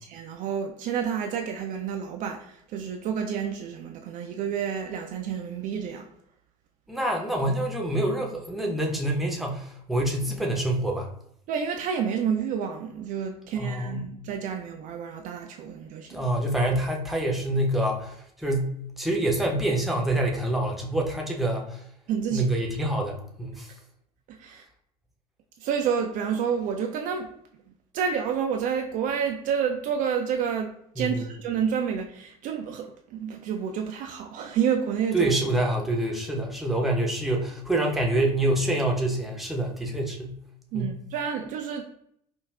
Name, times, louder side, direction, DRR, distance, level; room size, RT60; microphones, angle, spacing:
voice 1, 0.1-6.1 11.5-16.3 22.1-22.5 24.3-24.6 25.6-27.3 27.9-35.3 40.7-41.8, right 7 dB, 45° right, 0.4 m, -29 dB
voice 2, 6.9-11.1 13.6-14.1 16.1-21.8 22.3-23.7 31.0-31.3 35.1-40.4 40.7-40.9, right 1 dB, ahead, 0.7 m, -26 dB
5.1 x 2.2 x 2.2 m
figure-of-eight pair, 65°, 19 cm